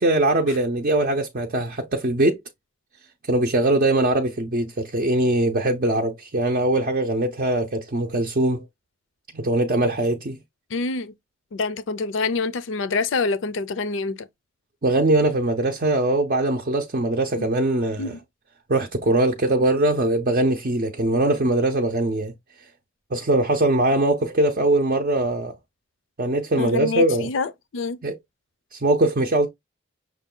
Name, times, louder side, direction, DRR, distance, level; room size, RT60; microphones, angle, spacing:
voice 1, 0.0-2.4 3.2-8.6 9.3-10.4 14.8-18.1 18.7-22.3 23.1-25.5 26.2-27.3 28.0-28.2 28.7-29.5, right 2 dB, 45° right, 0.5 m, -21 dB
voice 2, 10.7-11.1 11.5-14.2 17.4-17.5 18.0-18.2 26.6-28.0, left 4 dB, 75° left, 0.5 m, -26 dB
6.1 x 2.2 x 3.7 m
head